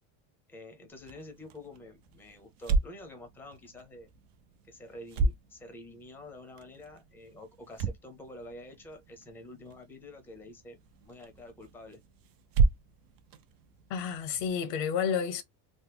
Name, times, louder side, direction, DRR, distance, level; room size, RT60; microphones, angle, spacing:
voice 1, 0.5-4.1 4.7-12.0, left 1 dB, 5° left, 0.6 m, -48 dB
sound 1, 0.9-14.5, right 4 dB, 45° right, 0.6 m, -35 dB
voice 2, 13.9-15.4, left 7 dB, 85° left, 1.0 m, -30 dB
3.2 x 2.1 x 3.4 m
cardioid pair, 135°, 48 cm